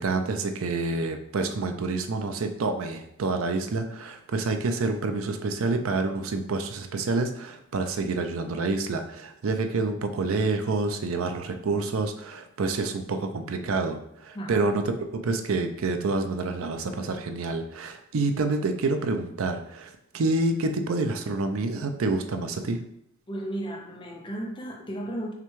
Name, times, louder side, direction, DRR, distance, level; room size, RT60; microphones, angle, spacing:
voice 1, 0.0-14.8 15.2-22.8, right 3 dB, 70° right, 7 dB, 0.5 m, -28 dB
voice 2, 14.3-14.7 23.3-25.3, right 1 dB, 20° left, 0 dB, 0.5 m, -34 dB
5.7 x 2.2 x 3.1 m, 0.75 s
head